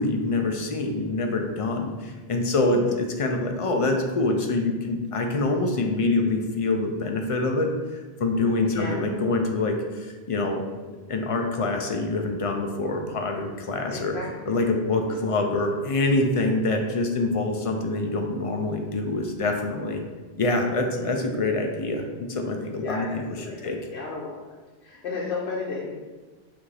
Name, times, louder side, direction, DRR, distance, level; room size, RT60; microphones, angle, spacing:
voice 1, 0.0-10.6 11.1-14.1 14.5-20.0 20.4-23.8, left 2 dB, 45° left, 3 dB, 0.5 m, -25 dB
voice 2, 13.9-14.5 20.9-21.1 22.8-24.4 24.8-26.0, left 4 dB, 85° left, -4 dB, 1.0 m, -33 dB
5.8 x 2.6 x 3.3 m, 1.3 s
omnidirectional pair, 1.1 m